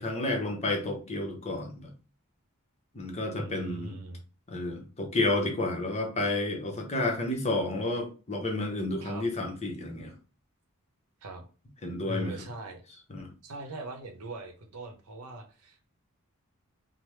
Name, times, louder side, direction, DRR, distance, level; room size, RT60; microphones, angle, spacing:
voice 1, 0.0-1.9 2.9-3.9 4.5-10.1 11.8-12.3 13.1-13.3, left 2 dB, 30° left, 2 dB, 0.7 m, -31 dB
voice 2, 3.4-4.2 9.0-9.2 11.2-11.5 12.1-12.8 13.4-15.9, right 1 dB, 85° right, 3 dB, 0.7 m, -40 dB
3.3 x 2.0 x 3.0 m, 0.35 s
head